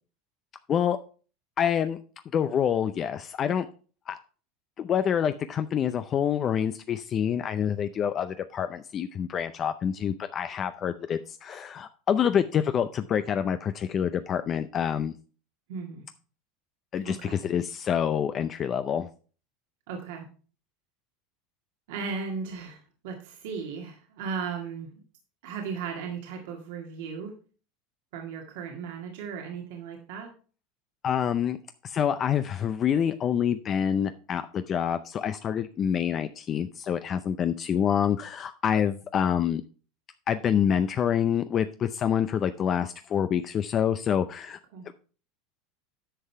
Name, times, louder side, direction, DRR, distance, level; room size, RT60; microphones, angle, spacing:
voice 1, 1.6-2.0 2.3-3.7 4.1-4.2 4.8-15.1 16.9-19.1 31.0-31.6 31.8-39.6 40.3-44.6, left 8 dB, 35° left, 10 dB, 0.5 m, -27 dB
voice 2, 15.7-16.0 17.0-17.4 19.9-20.3 21.9-24.9 25.4-27.3 28.1-30.3 44.7-44.9, right 5 dB, 75° right, 1 dB, 1.8 m, -36 dB
10.0 x 5.5 x 4.5 m, 0.39 s
supercardioid pair, 125°, 0 cm